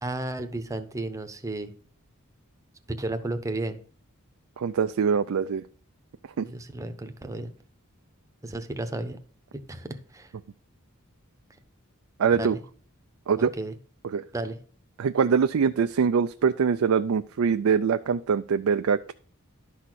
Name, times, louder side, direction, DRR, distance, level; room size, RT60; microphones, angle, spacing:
voice 1, 0.0-1.7 2.9-3.8 6.4-7.5 8.4-9.2 9.7-10.3 12.4-12.6 13.4-13.7 14.3-14.6, right 2 dB, 15° right, 8 dB, 0.9 m, -33 dB
voice 2, 4.6-5.6 6.4-6.5 12.2-12.6 13.3-13.5 14.0-14.3 15.0-19.1, right 6 dB, 75° right, 9 dB, 0.4 m, -23 dB
11.5 x 4.2 x 6.2 m, 0.43 s
head